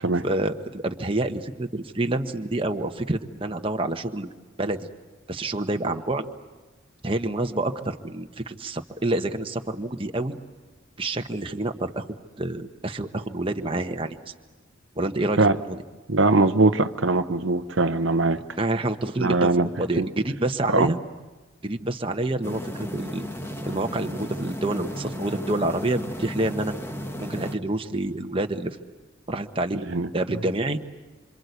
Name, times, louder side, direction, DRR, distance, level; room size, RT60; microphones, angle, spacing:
voice 1, 0.2-4.3 4.6-4.9 5.3-6.3 7.0-10.4 11.0-12.0 12.4-14.3 15.0-15.4 15.7-15.8 18.6-21.0 21.6-23.3 23.6-26.7 27.2-28.8 29.3-30.8, right 2 dB, 25° right, 5 dB, 1.2 m, -28 dB
voice 2, 16.1-18.4 19.2-19.7 20.0-20.1 20.7-20.9 29.9-30.1, right 3 dB, 75° right, 10 dB, 0.9 m, -21 dB
sound 1, 22.4-27.6, equal, 10° left, 1.5 m, -34 dB
27.0 x 26.5 x 8.2 m, 1.3 s
head